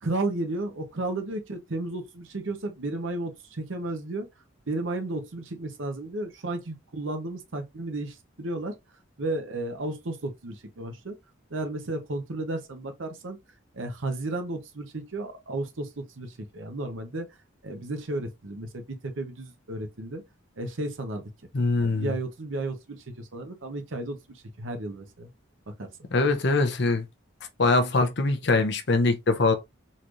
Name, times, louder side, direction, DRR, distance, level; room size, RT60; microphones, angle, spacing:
voice 1, 0.0-4.3 4.7-8.7 9.2-11.2 11.5-13.4 13.7-17.3 17.6-20.2 20.6-21.2 21.8-25.3 25.7-25.9, right 2 dB, 70° right, 0.9 m, -33 dB
voice 2, 21.5-22.1 26.1-27.0 27.6-29.5, left 3 dB, 55° left, 0.7 m, -23 dB
4.1 x 3.2 x 2.5 m
head